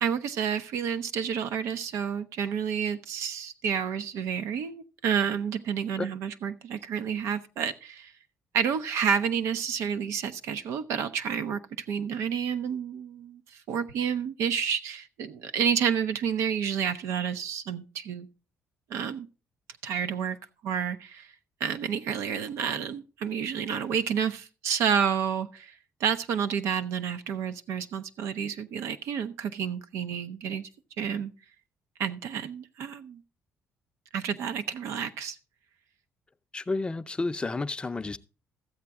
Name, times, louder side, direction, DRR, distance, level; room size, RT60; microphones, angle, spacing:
voice 1, 0.0-8.1 8.5-11.6 11.9-13.4 13.7-18.3 18.9-19.3 19.8-20.4 20.6-21.3 21.6-25.7 26.0-30.7 31.0-31.3 32.0-33.2 34.1-35.4, right 7 dB, 80° right, 0.6 m, -30 dB
voice 2, 36.5-38.2, left 3 dB, 20° left, 0.5 m, -31 dB
13.0 x 7.7 x 3.5 m
cardioid pair, 100°, 5 cm